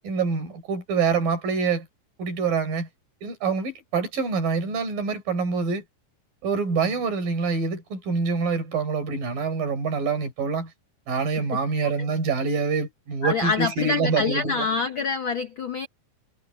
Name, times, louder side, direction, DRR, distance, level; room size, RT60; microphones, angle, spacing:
voice 1, 0.0-1.9 2.2-2.9 3.2-5.8 6.4-10.7 11.1-14.7, right 4 dB, 70° right, 6.1 m, -26 dB
voice 2, 13.2-15.9, left 3 dB, 75° left, 1.1 m, -26 dB
omnidirectional pair, 4.2 m